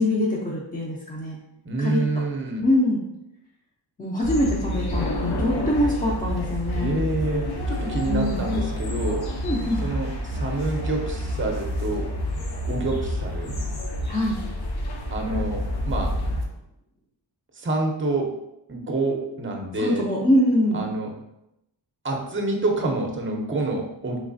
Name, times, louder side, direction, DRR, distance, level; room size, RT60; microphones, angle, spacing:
voice 1, 0.0-1.4 1.8-2.0 2.6-3.0 4.0-7.0 8.1-8.4 9.4-9.8 14.1-14.4 19.8-20.8, left 1 dB, 20° left, -5 dB, 0.5 m, -23 dB
voice 2, 1.6-2.6 6.7-9.3 9.8-12.1 12.7-13.5 15.1-16.2 17.5-18.3 18.7-20.0 20.7-21.1 22.0-24.2, right 2 dB, 25° right, 2 dB, 0.6 m, -27 dB
sound 1, 4.2-16.4, left 1 dB, 55° left, 0.7 m, -28 dB
3.2 x 3.2 x 2.5 m, 0.85 s
cardioid pair, 85°, 45 cm